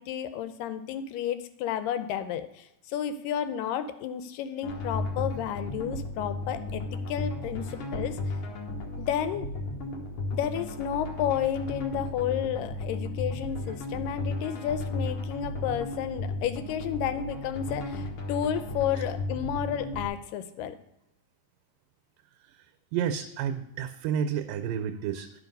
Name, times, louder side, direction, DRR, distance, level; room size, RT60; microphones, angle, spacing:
voice 1, 0.0-8.2 9.0-9.5 10.3-20.8, left 9 dB, 90° left, 11 dB, 2.3 m, -31 dB
sound 1, 4.6-20.1, left 2 dB, 60° left, 1.4 m, -34 dB
voice 2, 22.9-25.4, right 8 dB, 85° right, 6 dB, 2.2 m, -30 dB
11.5 x 4.7 x 5.3 m, 0.82 s
omnidirectional pair, 3.8 m